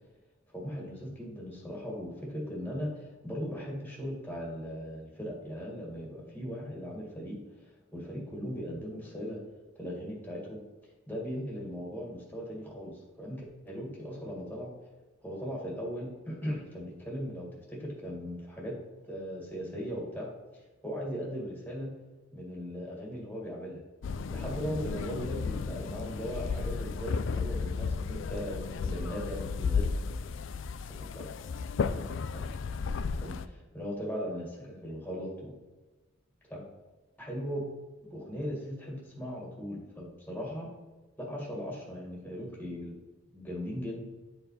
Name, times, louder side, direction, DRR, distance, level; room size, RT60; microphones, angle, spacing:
voice 1, 0.5-2.9 3.2-7.4 7.9-9.4 9.8-10.6 11.1-14.7 15.2-18.8 19.0-21.9 22.3-23.8 24.3-29.9 31.0-31.3 33.1-35.5 36.5-36.6 37.2-37.7 38.1-40.7 41.2-43.0 43.3-44.1, equal, 10° left, -2 dB, 1.9 m, -38 dB
sound 1, 24.0-33.5, left 5 dB, 70° left, 0.4 m, -33 dB
9.6 x 4.6 x 4.1 m, 1.2 s
head